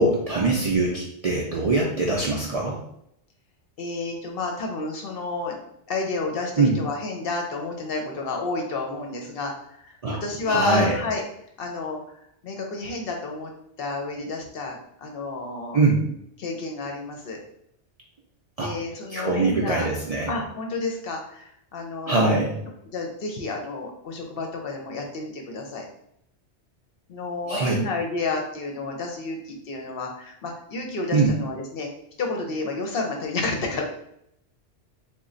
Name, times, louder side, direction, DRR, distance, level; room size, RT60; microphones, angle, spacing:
voice 1, 0.0-2.8 6.6-6.7 10.0-10.9 15.7-16.0 18.6-18.7 19.1-20.3 22.1-22.6 27.5-27.8 31.1-31.3, right 3 dB, 50° right, -3 dB, 0.4 m, -22 dB
voice 2, 3.8-5.6 5.9-11.2 11.6-12.0 12.4-13.5 13.8-15.8 16.4-17.4 18.6-19.9 20.3-22.4 22.9-25.8 27.1-31.9 32.2-33.8, left 3 dB, 60° left, 1 dB, 0.7 m, -30 dB
3.1 x 2.2 x 3.7 m, 0.74 s
omnidirectional pair, 1.2 m